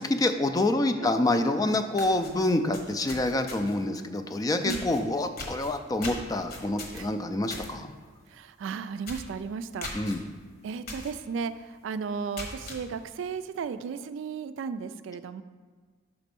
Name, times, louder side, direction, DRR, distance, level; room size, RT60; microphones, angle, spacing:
voice 1, 0.0-7.9 9.9-10.2, left 2 dB, 20° left, 8 dB, 0.3 m, -27 dB
sound 1, 1.5-1.6 1.9-3.9 4.7-5.0 5.4-7.7 8.1-8.3 8.6-8.7 9.0-9.3 9.8-10.2 10.9-11.1 11.6-11.7 12.2-12.8, left 2 dB, 55° left, 1.1 m, -39 dB
voice 2, 8.3-9.9 10.6-11.5 11.8-15.4, right 5 dB, 80° right, 12 dB, 0.3 m, -34 dB
5.9 x 4.1 x 5.2 m, 1.5 s
head